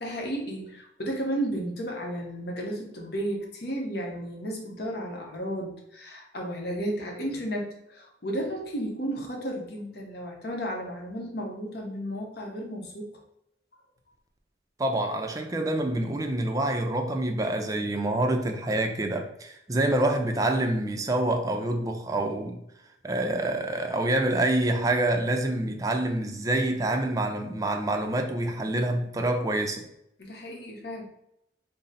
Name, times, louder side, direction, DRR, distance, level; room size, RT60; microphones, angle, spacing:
voice 1, 0.0-13.1 30.2-31.1, right 1 dB, 65° left, 0.8 m, -33 dB
voice 2, 14.8-22.6 23.0-29.8, right 1 dB, 20° right, 0.4 m, -27 dB
3.8 x 2.0 x 4.0 m
head